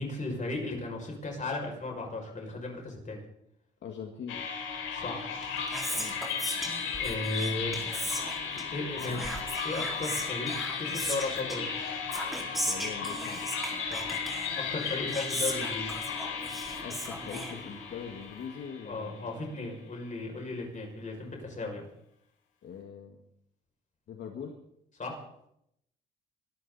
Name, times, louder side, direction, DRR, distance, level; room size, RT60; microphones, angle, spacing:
voice 1, 0.0-3.2 4.9-5.3 6.9-8.0 8.4-11.7 13.9-14.1 14.6-15.9 18.8-21.9 25.0-25.2, left 2 dB, 40° left, 1 dB, 6.6 m, -36 dB
voice 2, 3.8-4.5 5.9-6.2 12.7-13.4 16.8-19.4 22.6-23.2 24.1-24.6, left 7 dB, 65° left, 3 dB, 2.0 m, -42 dB
sound 1, 4.3-19.5, left 6 dB, 90° left, 4.2 m, -35 dB
Whispering, 5.2-18.1, equal, ahead, 4.8 m, -38 dB
23.5 x 13.5 x 4.2 m, 0.76 s
cardioid pair, 90°, 20 cm